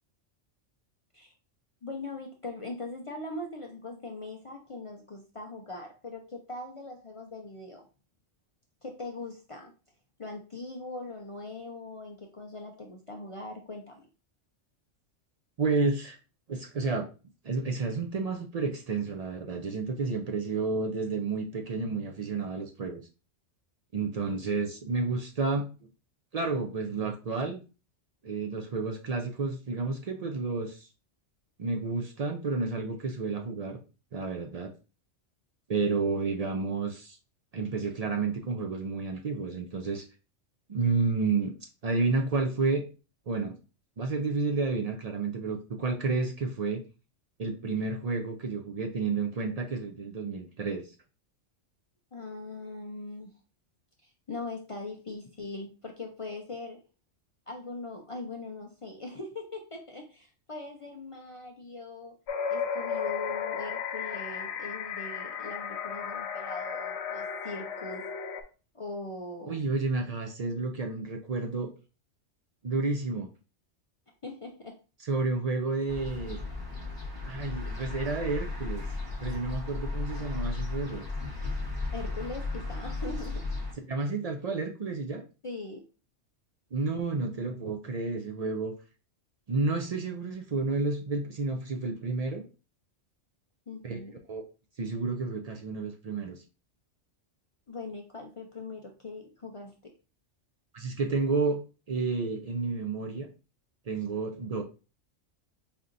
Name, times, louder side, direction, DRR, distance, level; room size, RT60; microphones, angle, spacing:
voice 1, 1.8-7.8 8.8-9.7 10.2-14.1 52.1-53.3 54.0-56.8 57.5-62.1 62.5-68.1 68.7-69.6 74.2-74.8 81.9-83.5 85.4-85.8 93.7-94.1 97.7-99.9, left 2 dB, 45° left, 1 dB, 0.4 m, -41 dB
voice 2, 15.6-16.2 16.5-17.1 17.4-23.0 23.9-25.7 26.3-27.6 28.2-30.9 31.6-33.8 34.1-34.7 35.7-37.2 37.5-40.0 40.7-42.8 43.3-43.5 44.0-46.8 47.4-50.9 69.5-71.7 72.6-73.3 75.0-76.4 77.2-78.8 79.2-81.0 83.9-85.2 86.7-88.7 89.5-92.4 93.8-94.0 94.3-94.4 94.8-96.4 100.7-101.6 101.9-103.3 103.9-104.6, right 4 dB, 60° right, 3 dB, 0.4 m, -30 dB
sound 1, 62.3-68.4, left 7 dB, 65° left, 0.9 m, -34 dB
sound 2, 75.9-83.7, left 3 dB, 20° right, 1.2 m, -35 dB
5.2 x 2.8 x 2.5 m, 0.33 s
omnidirectional pair, 1.3 m